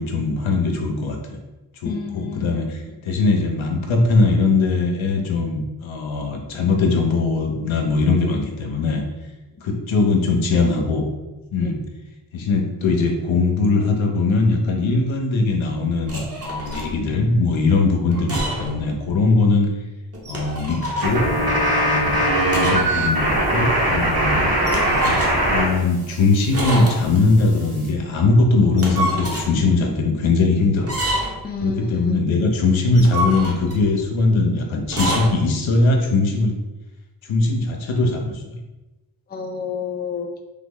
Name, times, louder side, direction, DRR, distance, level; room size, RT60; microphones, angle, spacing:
voice 1, 0.0-1.4 1.8-9.0 9.6-11.1 11.5-11.8 12.3-19.7 20.3-21.3 21.8-24.5 25.0-25.2 25.5-30.9 31.6-36.6 37.3-38.5, left 3 dB, 85° left, 2 dB, 0.7 m, -20 dB
voice 2, 1.8-2.6 11.6-11.7 24.4-24.8 31.4-32.2 39.3-40.3, left 5 dB, 25° left, 4 dB, 0.4 m, -30 dB
sound 1, 16.1-16.9 18.1-18.8 19.1-19.2 20.1-21.2 22.5-22.9 23.2-23.3 24.7-25.5 26.5-27.2 28.6-29.5 30.8-31.5 32.8-33.8 34.8-35.3, right 1 dB, 30° right, 0.9 m, -27 dB
sound 2, 21.0-25.7 25.9-27.9, right 1 dB, 50° right, 1.2 m, -21 dB
3.4 x 2.0 x 3.7 m, 1.0 s
cardioid pair, 55°, 46 cm